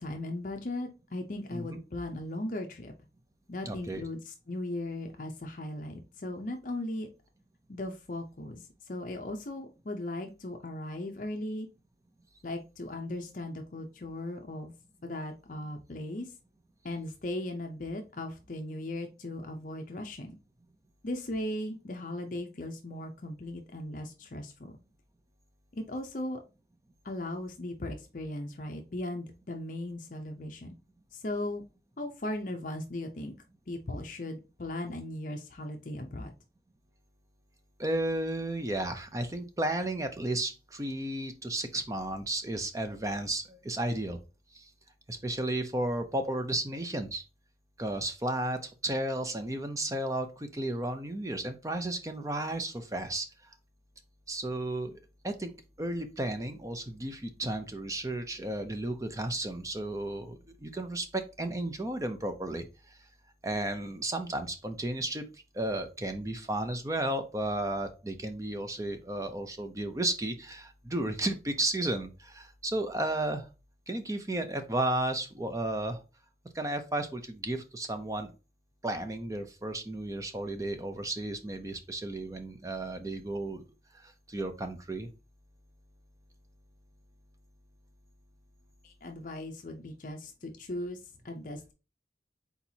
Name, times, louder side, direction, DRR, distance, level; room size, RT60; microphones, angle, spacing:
voice 1, 0.0-2.9 3.5-7.1 7.7-11.7 12.4-14.7 15.0-16.3 16.8-20.3 21.0-24.8 25.7-26.4 27.0-30.7 31.1-31.6 32.0-33.3 33.7-36.3 88.8-91.7, left 1 dB, 45° left, 3 dB, 0.6 m, -38 dB
voice 2, 3.6-4.0 37.8-44.2 44.5-44.7 45.1-47.2 47.8-53.5 54.3-55.0 55.2-55.5 55.8-63.0 63.4-73.5 73.9-76.0 76.5-78.3 78.8-83.6 83.9-85.1, right 1 dB, 20° right, 7 dB, 0.6 m, -33 dB
4.4 x 4.1 x 2.8 m, 0.30 s
head